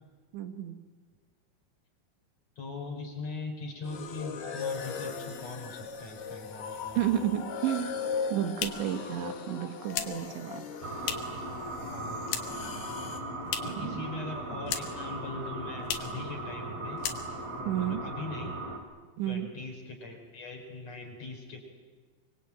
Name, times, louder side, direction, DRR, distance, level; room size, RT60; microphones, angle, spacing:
voice 1, 0.3-0.8 7.0-8.0 8.3-10.6 13.6-14.1 17.6-18.0 19.2-19.5, right 11 dB, 75° right, 6 dB, 3.7 m, -31 dB
voice 2, 2.6-7.0 11.9-12.2 13.6-17.0 17.6-18.5 19.3-21.6, left 3 dB, 35° left, 2 dB, 5.7 m, -41 dB
sound 1, 3.8-13.2, left 6 dB, 60° left, 3.9 m, -38 dB
sound 2, 8.1-11.5 11.8-12.7 13.0-13.9 14.2-15.1 15.4-15.5 15.8-16.2 16.6-16.7 17.0-17.6, left 9 dB, 80° left, 4.2 m, -37 dB
sound 3, 10.8-18.8, right 1 dB, 35° right, 3.6 m, -38 dB
25.5 x 25.0 x 8.9 m, 1.5 s
omnidirectional pair, 5.5 m